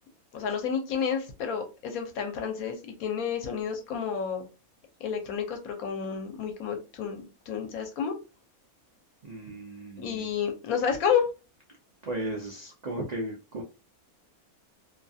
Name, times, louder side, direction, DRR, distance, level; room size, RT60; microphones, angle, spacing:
voice 1, 0.3-4.4 5.0-8.1 10.0-11.2, left 7 dB, 80° left, 1.1 m, -30 dB
voice 2, 9.2-10.3 12.0-13.6, right 1 dB, 70° right, 0.4 m, -35 dB
2.7 x 2.3 x 2.6 m
omnidirectional pair, 1.5 m